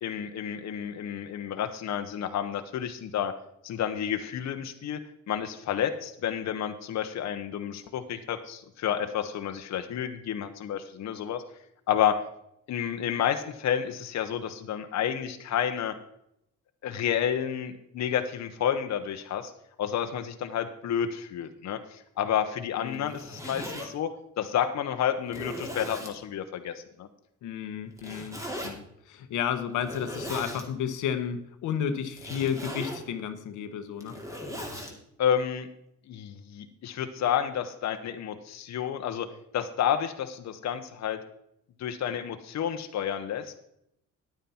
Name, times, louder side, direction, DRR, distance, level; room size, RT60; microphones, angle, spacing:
voice 1, 0.0-3.3 3.6-5.0 5.3-11.4 11.9-12.2 12.7-15.9 16.8-19.5 19.8-24.1 24.4-26.7 27.0-27.1 35.2-35.7 36.1-39.3 39.5-41.2 41.8-43.6, left 9 dB, 60° left, 7 dB, 0.9 m, -30 dB
voice 2, 22.8-23.1 27.4-34.2, left 8 dB, 85° left, 9 dB, 1.0 m, -32 dB
Zipper (clothing), 22.9-23.9 24.6-24.7 25.3-26.2 28.0-28.7 29.7-30.6 32.1-33.1 33.8-34.9, equal, 10° right, 2.6 m, -38 dB
10.5 x 9.2 x 4.3 m, 0.76 s
cardioid pair, 90°, 30 cm